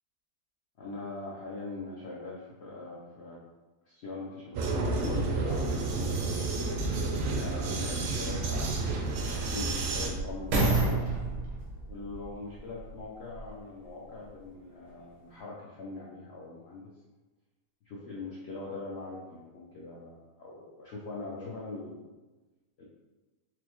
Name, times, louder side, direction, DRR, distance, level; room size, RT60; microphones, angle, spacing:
voice 1, 0.8-3.4 3.9-6.5 7.3-11.1 11.9-16.9 17.8-22.0 22.8-22.9, left 3 dB, 85° left, -5 dB, 0.5 m, -42 dB
Vehicle, 4.5-10.1, right 3 dB, 70° right, 0.8 m, -30 dB
sound 1, 9.4-13.6 14.3-14.4, right 2 dB, 90° right, 1.6 m, -31 dB
4.6 x 2.0 x 3.0 m, 1.2 s
omnidirectional pair, 1.8 m